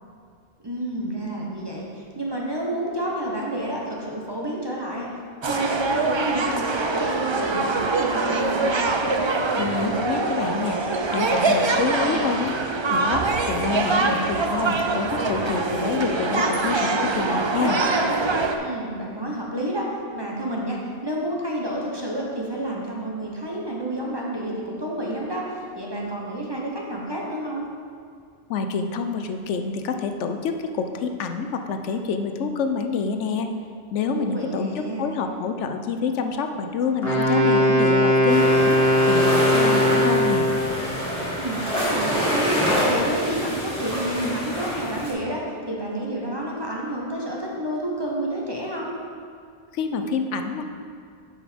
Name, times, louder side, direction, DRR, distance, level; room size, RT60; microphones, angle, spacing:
voice 1, 0.6-5.1 5.5-8.8 11.8-12.4 18.6-27.7 34.1-35.1 41.4-48.9, right 1 dB, 20° right, -3 dB, 1.0 m, -30 dB
sound 1, 5.4-18.6, right 3 dB, 45° right, 0.3 m, -23 dB
voice 2, 9.6-10.8 11.1-12.5 12.9-17.8 28.5-33.5 33.9-40.5 49.7-50.7, left 5 dB, 80° left, 6 dB, 0.9 m, -27 dB
Wind instrument woodwind instrument, 37.0-40.7, equal, 55° left, 2.0 m, -19 dB
sound 2, 38.3-45.1, equal, 5° left, 2.1 m, -26 dB
8.3 x 5.7 x 5.1 m, 2.2 s
omnidirectional pair, 1.2 m